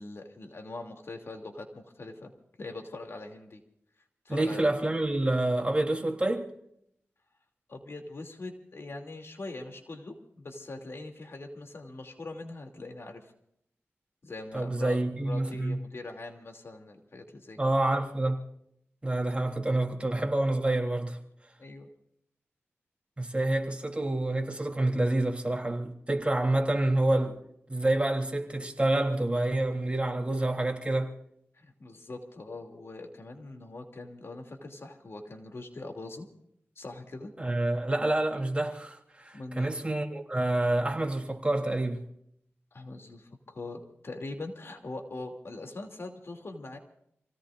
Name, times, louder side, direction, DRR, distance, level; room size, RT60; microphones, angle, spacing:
voice 1, 0.0-2.3 2.6-3.6 4.2-4.6 7.7-13.3 14.2-17.6 21.6-21.9 31.5-36.3 36.8-37.3 39.3-39.7 42.7-46.8, left 2 dB, 65° left, 2.8 m, -42 dB
voice 2, 4.3-6.5 14.5-15.8 17.6-18.4 19.0-21.2 23.2-27.4 27.7-31.1 37.4-42.0, right 2 dB, 25° right, 3.3 m, -28 dB
29.0 x 17.5 x 2.6 m
wide cardioid pair, 65°, 5 cm